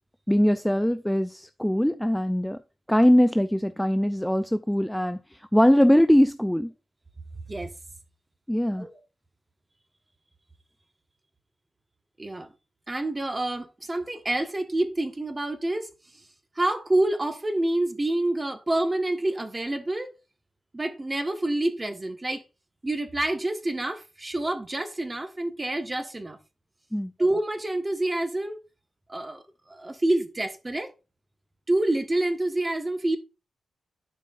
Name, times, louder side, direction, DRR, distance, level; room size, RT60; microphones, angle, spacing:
voice 1, 0.3-2.6 2.9-6.7 8.5-8.9 26.9-27.1, equal, 5° left, 0.4 m, -21 dB
voice 2, 12.2-12.5 12.9-15.9 16.5-20.1 20.7-22.4 22.8-26.4 27.2-28.6 29.1-30.9 31.7-33.2, right 1 dB, 20° right, 1.3 m, -27 dB
12.0 x 4.9 x 2.5 m
wide cardioid pair, 140°, 0 cm